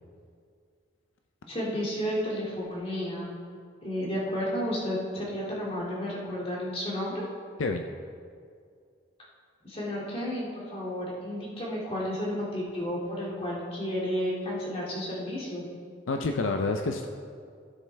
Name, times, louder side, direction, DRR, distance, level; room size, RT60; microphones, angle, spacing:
voice 1, 1.4-3.4 3.8-7.2 9.6-15.7, equal, 30° left, -5 dB, 2.4 m, -32 dB
voice 2, 16.1-17.1, left 3 dB, 75° left, 4 dB, 0.5 m, -28 dB
16.0 x 7.3 x 3.4 m, 2.2 s
head